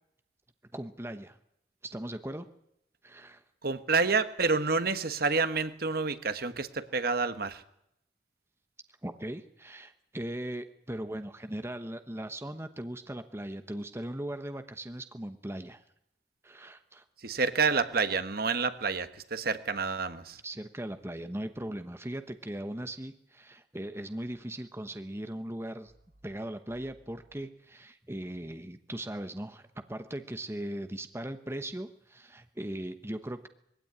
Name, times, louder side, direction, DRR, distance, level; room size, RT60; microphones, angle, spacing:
voice 1, 0.7-1.4 1.8-2.5 3.0-3.4 9.0-15.8 16.4-17.0 20.4-25.9 26.2-33.5, right 1 dB, 15° right, 9 dB, 1.0 m, -39 dB
voice 2, 3.6-7.6 17.2-20.4, right 4 dB, 55° right, 11 dB, 1.3 m, -28 dB
21.0 x 16.5 x 9.6 m, 0.78 s
head